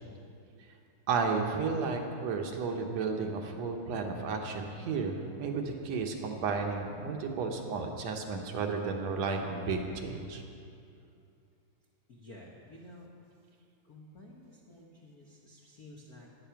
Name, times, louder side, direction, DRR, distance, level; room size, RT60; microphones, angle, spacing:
voice 1, 1.1-10.4, right 4 dB, 70° right, 2 dB, 2.0 m, -33 dB
voice 2, 12.1-13.1 13.8-16.3, left 1 dB, 65° left, -2 dB, 0.9 m, -52 dB
14.0 x 9.9 x 5.8 m, 2.6 s
omnidirectional pair, 3.5 m